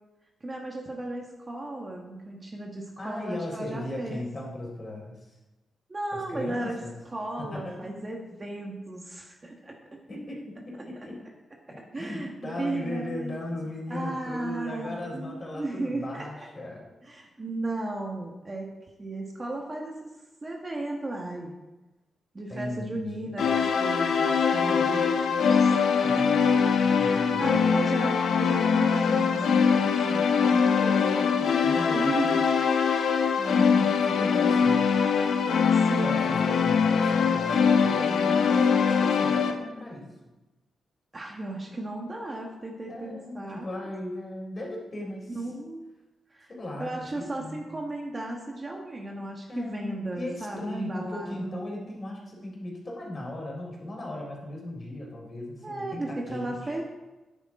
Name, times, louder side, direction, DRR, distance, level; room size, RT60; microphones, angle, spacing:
voice 1, 0.4-4.2 5.9-6.8 7.1-9.8 11.9-13.4 13.9-16.3 17.0-20.1 20.4-21.5 22.3-26.5 27.0-30.3 31.9-32.5 35.7-36.2 41.1-43.7 45.3-45.9 46.3-46.5 46.8-51.6 55.6-56.8, right 2 dB, 25° right, 0 dB, 1.6 m, -35 dB
voice 2, 3.0-5.2 6.1-6.9 7.4-8.0 10.1-11.2 11.7-16.8 22.5-23.6 26.0-27.7 30.1-32.4 33.4-34.8 36.0-40.1 42.9-45.4 46.5-47.7 49.5-49.9 50.1-56.6, left 1 dB, 35° left, -1 dB, 4.0 m, -37 dB
sound 1, 23.4-39.5, left 6 dB, 80° left, 1.2 m, -23 dB
13.5 x 10.0 x 3.7 m, 1.1 s
wide cardioid pair, 125°, 0 cm